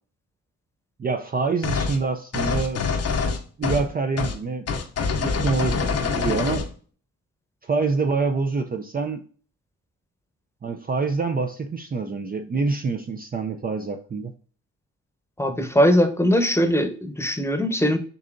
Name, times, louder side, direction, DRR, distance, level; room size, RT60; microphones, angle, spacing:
voice 1, 1.0-2.8 3.6-4.6 5.2-6.6 7.6-9.2 10.6-14.3, right 4 dB, 30° right, 5 dB, 0.5 m, -26 dB
sound 1, 1.6-2.0 2.3-3.9 4.2-4.4 4.7-6.7, left 5 dB, 50° left, 0.8 m, -25 dB
voice 2, 15.4-18.0, equal, 10° left, 7 dB, 0.9 m, -20 dB
6.7 x 2.7 x 2.5 m, 0.42 s
cardioid pair, 60°, 31 cm